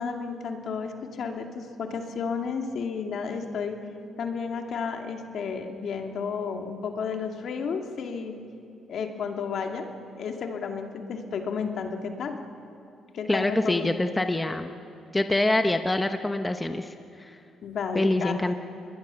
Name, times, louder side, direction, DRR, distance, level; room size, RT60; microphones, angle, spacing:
voice 1, 0.0-3.8 4.2-8.4 8.9-9.9 10.2-12.4 13.1-13.9 17.6-18.4, left 5 dB, 65° left, 4 dB, 2.4 m, -32 dB
voice 2, 13.3-14.7 15.1-17.4 17.9-18.6, left 2 dB, 15° left, 7 dB, 1.1 m, -25 dB
28.0 x 21.0 x 7.1 m, 2.7 s
cardioid pair, 90°, 0 cm